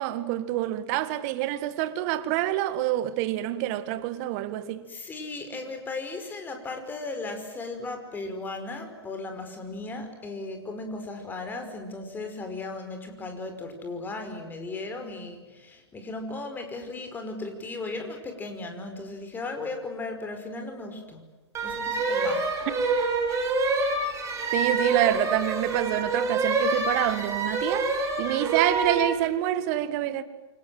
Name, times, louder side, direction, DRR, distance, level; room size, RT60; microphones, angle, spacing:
voice 1, 0.0-4.9 22.9-23.0 24.5-30.2, right 14 dB, 35° right, 1.9 m, -27 dB
voice 2, 4.9-21.2 21.6-22.5, left 3 dB, 15° left, 5.3 m, -36 dB
sound 1, 21.5-29.1, right 3 dB, 20° right, 6.3 m, -27 dB
29.0 x 25.0 x 7.8 m
figure-of-eight pair, 115°, 14 cm